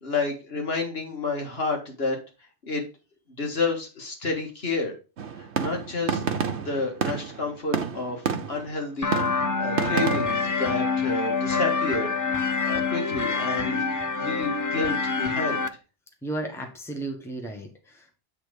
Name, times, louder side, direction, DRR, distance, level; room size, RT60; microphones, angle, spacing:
voice 1, 0.0-2.2 2.6-2.8 3.4-4.9 5.4-6.2 6.6-12.1 12.6-15.7, left 3 dB, 60° left, 2 dB, 2.0 m, -30 dB
sound 1, 5.2-8.7 9.1-10.5, right 6 dB, 70° right, 1.2 m, -29 dB
sound 2, 9.0-15.7, left 4 dB, 30° left, 0.3 m, -26 dB
voice 2, 16.2-18.2, right 2 dB, ahead, 2 dB, 1.4 m, -34 dB
8.8 x 3.6 x 5.1 m, 0.31 s
omnidirectional pair, 1.2 m